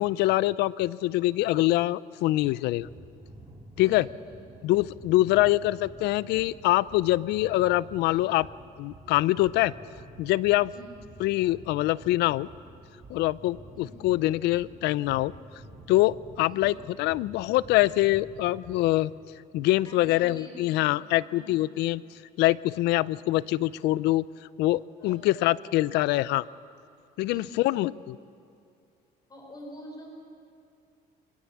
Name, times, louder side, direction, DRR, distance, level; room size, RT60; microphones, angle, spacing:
voice 1, 0.0-2.9 3.8-4.1 4.6-8.5 8.8-9.7 10.2-10.7 11.2-12.5 13.1-15.3 15.9-19.1 19.5-22.0 22.4-24.3 24.6-26.4 27.2-28.2, left 17 dB, 85° left, 20 dB, 0.5 m, -24 dB
sound 1, 2.7-19.1, right 2 dB, 25° right, 3.1 m, -49 dB
voice 2, 3.8-4.6 5.2-5.4 10.7-11.0 13.7-14.0 16.5-16.7 19.8-21.0 21.3-21.5 25.0-25.4 27.3-28.0 29.3-30.1, equal, 25° left, 1 dB, 4.8 m, -47 dB
23.5 x 19.5 x 7.2 m, 2.4 s
cardioid pair, 110°, 17 cm